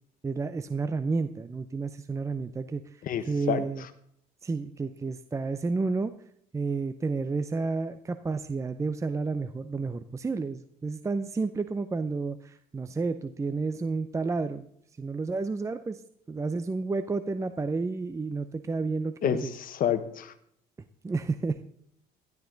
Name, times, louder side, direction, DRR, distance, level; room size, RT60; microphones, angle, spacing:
voice 1, 0.2-3.8 4.4-6.1 6.5-14.7 15.0-16.0 16.3-19.5 21.0-21.6, right 4 dB, 20° right, 11 dB, 0.6 m, -31 dB
voice 2, 3.0-3.9 19.2-20.3, left 9 dB, 55° left, 10 dB, 1.3 m, -29 dB
13.0 x 12.0 x 3.9 m, 0.68 s
cardioid pair, 110°, 17 cm